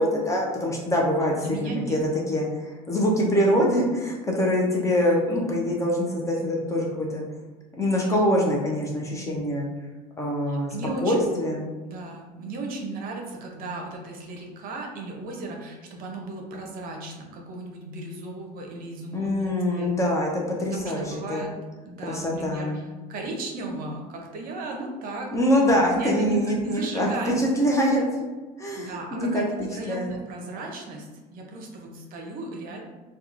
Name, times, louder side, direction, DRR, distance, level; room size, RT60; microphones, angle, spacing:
voice 1, 0.0-2.0 2.3-7.2 7.8-9.7 10.2-10.7 11.0-11.7 19.1-21.5 22.0-22.8 25.3-27.1 27.4-28.0 28.6-29.4 29.9-30.1, equal, 15° left, -2 dB, 0.5 m, -24 dB
voice 2, 1.4-2.1 3.5-3.8 9.1-9.5 10.5-11.5 11.8-19.9 20.7-21.5 21.8-25.3 25.7-27.4 28.8-32.8, right 2 dB, 55° right, 1 dB, 0.6 m, -35 dB
2.8 x 2.3 x 2.4 m, 1.2 s
supercardioid pair, 115°, 18 cm